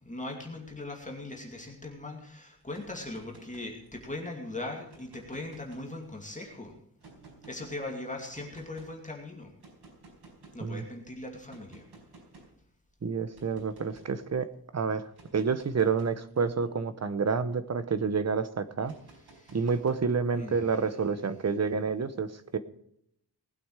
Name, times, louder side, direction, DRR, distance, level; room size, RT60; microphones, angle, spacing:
voice 1, 0.0-6.7 7.5-9.5 10.5-11.9 19.3-19.6 20.3-20.6, left 2 dB, 20° left, 0 dB, 2.6 m, -40 dB
sound 1, 2.6-4.2 4.8-6.3 7.0-7.8 8.3-8.9 9.6-10.7 11.5-12.6 13.3-14.2 15.0-17.9 18.8-20.4, right 3 dB, 85° right, 5.0 m, -55 dB
voice 2, 13.0-14.5 14.7-15.1 15.3-18.9 19.5-22.6, right 5 dB, 40° right, 12 dB, 1.0 m, -29 dB
19.5 x 8.7 x 4.8 m, 0.72 s
wide cardioid pair, 175°, 38 cm